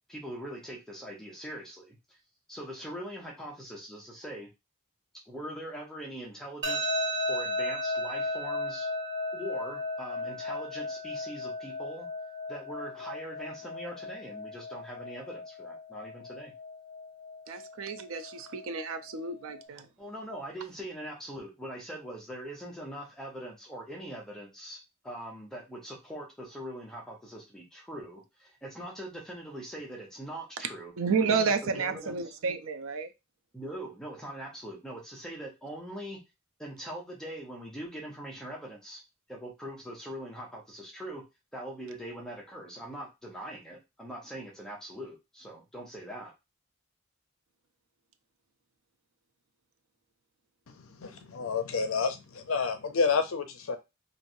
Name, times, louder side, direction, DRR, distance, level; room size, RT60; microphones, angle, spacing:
voice 1, 0.1-2.2 2.5-4.5 5.3-6.8 7.3-8.9 9.3-12.1 12.5-16.5 20.0-24.8 25.0-30.9 31.3-32.3 33.5-36.2 36.6-39.0 39.3-41.2 41.5-46.3, right 1 dB, 5° left, 0.7 m, -42 dB
sound 1, 6.6-19.6, left 1 dB, 55° right, 0.7 m, -36 dB
voice 2, 17.5-19.9 31.0-33.1, right 5 dB, 75° right, 0.4 m, -31 dB
voice 3, 50.7-53.8, left 5 dB, 75° left, 0.5 m, -30 dB
3.0 x 2.5 x 2.6 m
head